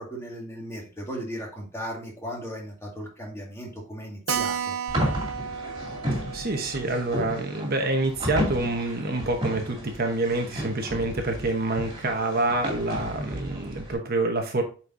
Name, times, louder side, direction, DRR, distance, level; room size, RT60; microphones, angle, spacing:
voice 1, 0.0-4.8, equal, 15° left, -1 dB, 1.9 m, -36 dB
Keyboard (musical), 4.3-9.3 9.6-9.7 10.0-10.1 10.3-10.4 11.0-11.4, right 7 dB, 80° right, 0.6 m, -35 dB
sound 1, 4.9-13.9, equal, 20° right, 2.3 m, -33 dB
voice 2, 6.1-14.6, right 2 dB, 50° right, 4 dB, 1.0 m, -27 dB
8.2 x 4.4 x 2.6 m, 0.36 s
head